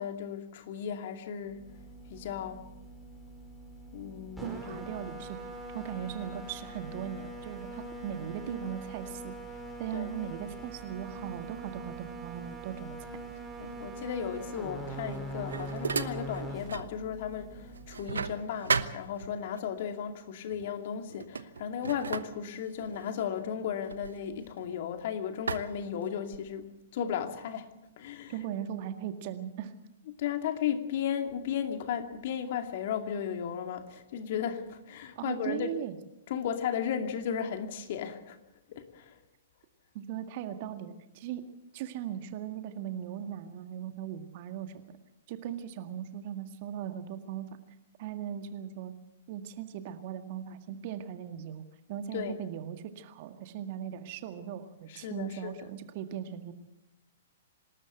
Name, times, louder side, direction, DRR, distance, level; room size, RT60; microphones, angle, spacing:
voice 1, 0.0-1.7 2.1-2.6 3.9-4.8 9.9-10.1 13.6-27.7 28.0-28.3 30.1-35.7 36.3-38.4 38.7-39.2 52.1-52.4 54.9-55.6, left 8 dB, 50° left, 2.4 m, -35 dB
sound 1, 1.4-18.7, right 2 dB, ahead, 5.4 m, -43 dB
voice 2, 4.4-5.4 5.7-9.4 9.8-13.0 28.3-29.7 35.2-36.0 39.9-41.4 41.7-44.7 45.3-47.5 48.0-48.9 49.3-51.6 51.9-56.5, right 10 dB, 45° right, 1.9 m, -38 dB
sound 2, 14.9-17.0 17.3-19.6 20.5-20.7 21.1-24.9 25.5-26.6, right 5 dB, 75° right, 1.0 m, -36 dB
26.5 x 13.0 x 8.0 m
figure-of-eight pair, 110°, 0 cm